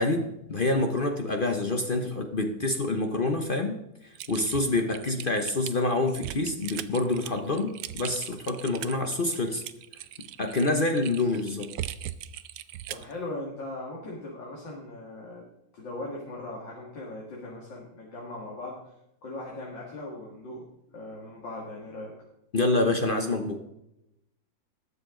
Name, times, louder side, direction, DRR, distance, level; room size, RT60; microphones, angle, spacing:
voice 1, 0.0-9.6 10.4-11.8 22.5-23.6, left 2 dB, 45° left, 5 dB, 0.7 m, -27 dB
Typing, 4.2-13.1, right 12 dB, 70° right, 1.0 m, -39 dB
voice 2, 12.9-15.4 15.7-18.8 19.2-22.1, left 2 dB, 75° left, -3 dB, 2.8 m, -39 dB
20.5 x 6.9 x 3.8 m, 0.84 s
omnidirectional pair, 2.0 m